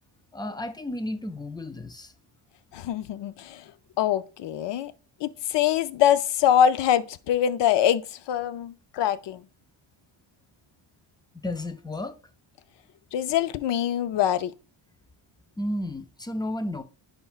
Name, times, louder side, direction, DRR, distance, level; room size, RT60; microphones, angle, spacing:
voice 1, 0.3-2.1 11.3-12.2 15.6-16.8, left 1 dB, 10° left, 0.4 m, -32 dB
voice 2, 2.7-3.6 4.0-4.9 5.2-9.4 13.1-14.5, left 10 dB, 60° left, 0.6 m, -24 dB
10.0 x 4.5 x 2.4 m
cardioid pair, 125°, 50 cm